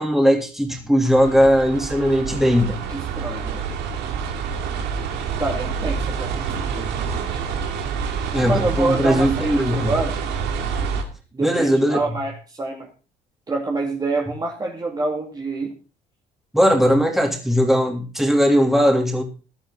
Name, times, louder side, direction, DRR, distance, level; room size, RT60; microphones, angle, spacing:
voice 1, 0.0-2.8 8.3-9.9 11.4-12.0 16.5-19.2, equal, ahead, 2 dB, 3.2 m, -18 dB
sound 1, 1.1-11.0, right 6 dB, 80° right, 2.8 m, -27 dB
voice 2, 2.9-3.7 5.4-7.4 8.4-10.2 11.3-12.9 13.5-15.7, right 3 dB, 25° right, 1 dB, 2.4 m, -27 dB
16.0 x 11.5 x 4.0 m, 0.33 s
cardioid pair, 110°, 17 cm